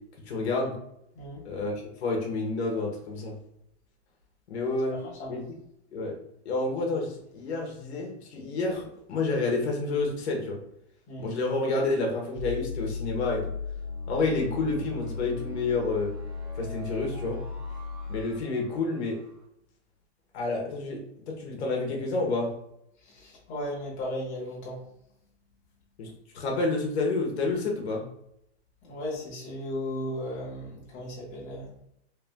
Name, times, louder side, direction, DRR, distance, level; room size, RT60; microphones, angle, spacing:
voice 1, 0.3-0.7 1.4-1.7 2.0-3.3 4.5-5.0 5.3-5.4 5.9-6.2 6.4-8.8 9.1-10.6 11.2-13.5 14.1-16.1 16.6-17.4 18.1-19.2 20.3-21.0 21.3-22.5 26.0-28.0, left 3 dB, 70° left, 0 dB, 1.2 m, -29 dB
voice 2, 4.9-5.3 11.1-11.3 23.0-24.8 28.8-31.7, left 1 dB, 20° left, -5 dB, 1.4 m, -36 dB
sound 1, 12.4-19.3, left 4 dB, 35° right, 1.6 m, -36 dB
3.4 x 3.3 x 3.5 m, 0.77 s
supercardioid pair, 160°, 33 cm